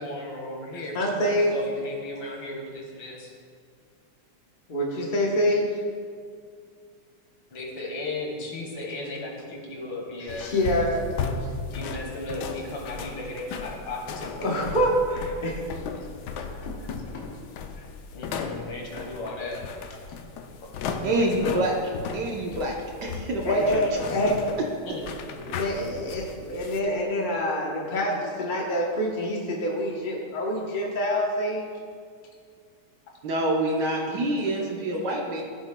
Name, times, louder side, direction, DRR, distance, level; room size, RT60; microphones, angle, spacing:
voice 1, 0.0-3.3 7.5-10.5 11.7-14.5 16.5-16.7 17.8-17.9 18.1-19.6 20.6-21.6 23.6-24.3 24.8-25.9, left 2 dB, 75° left, -1 dB, 2.4 m, -36 dB
voice 2, 0.9-1.5 4.7-5.8 10.3-11.1 11.4-11.5 14.4-15.6 16.6-16.8 17.1-17.2 23.4-24.5 25.5-31.7, equal, 50° left, -2 dB, 0.6 m, -26 dB
sound 1, 10.3-26.8, left 5 dB, 90° left, 0.9 m, -36 dB
voice 3, 21.0-21.7 22.1-23.8 33.2-35.4, right 1 dB, 60° right, -1 dB, 1.3 m, -26 dB
14.5 x 7.0 x 2.2 m, 2.2 s
omnidirectional pair, 2.4 m